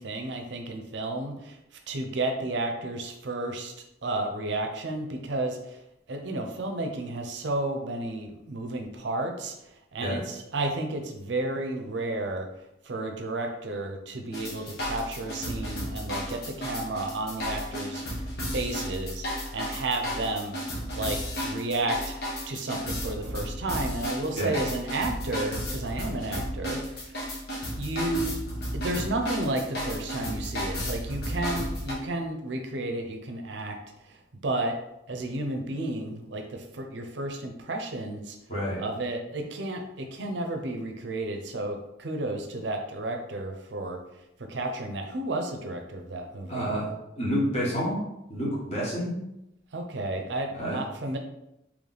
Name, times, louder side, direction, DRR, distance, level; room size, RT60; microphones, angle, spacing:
voice 1, 0.0-1.6 1.9-3.7 4.0-5.8 6.1-12.5 12.8-18.2 18.5-19.2 19.5-20.6 21.0-22.1 22.5-27.1 27.7-28.3 28.7-33.8 34.1-34.2 34.4-34.8 35.1-38.4 38.8-44.0 44.5-46.7 49.7-51.2, right 2 dB, 70° right, 4 dB, 0.6 m, -32 dB
sound 1, 14.3-31.9, equal, 55° left, 1.1 m, -33 dB
voice 2, 38.5-38.8 46.5-46.9 47.2-48.0 48.3-49.1 50.5-50.8, equal, 35° left, -5 dB, 1.4 m, -28 dB
3.3 x 3.0 x 4.0 m, 0.86 s
head